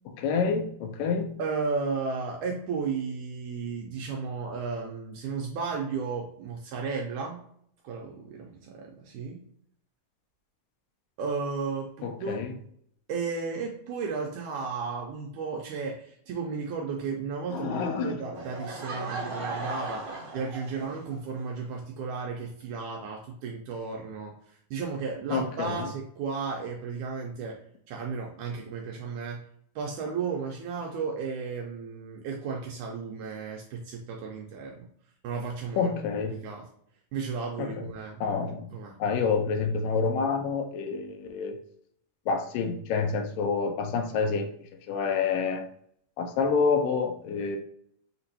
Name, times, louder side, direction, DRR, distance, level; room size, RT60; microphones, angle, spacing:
voice 1, 0.1-1.4 12.0-12.5 17.5-18.2 25.3-25.9 35.8-36.4 37.6-37.9 38.2-38.7 39.0-41.6 42.3-45.7 46.2-47.6, left 5 dB, 80° left, 5 dB, 2.2 m, -28 dB
voice 2, 1.4-7.4 7.8-9.4 11.2-12.5 13.1-27.6 27.9-29.4 29.8-34.9 35.2-35.9 36.3-36.7 37.1-38.2 38.7-39.0, right 5 dB, 80° right, 0 dB, 1.8 m, -34 dB
Laughter / Crowd, 18.3-21.2, right 2 dB, 60° right, 1.3 m, -37 dB
5.9 x 2.9 x 2.7 m, 0.66 s
omnidirectional pair, 4.0 m